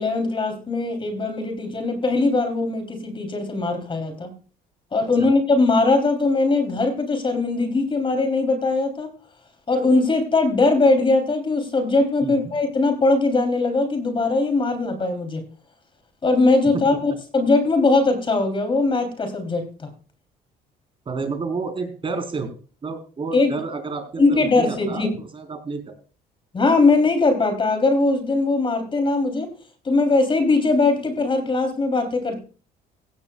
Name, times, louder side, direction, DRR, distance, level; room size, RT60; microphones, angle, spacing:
voice 1, 0.0-4.3 4.9-9.1 9.7-15.4 16.2-19.7 23.3-23.5 24.2-25.1 26.5-29.5 29.8-32.4, left 3 dB, 30° left, 6 dB, 3.3 m, -20 dB
voice 2, 21.1-22.5 22.8-25.9, right 4 dB, 30° right, 5 dB, 4.1 m, -30 dB
16.5 x 15.5 x 2.3 m, 0.37 s
cardioid pair, 110°, 17 cm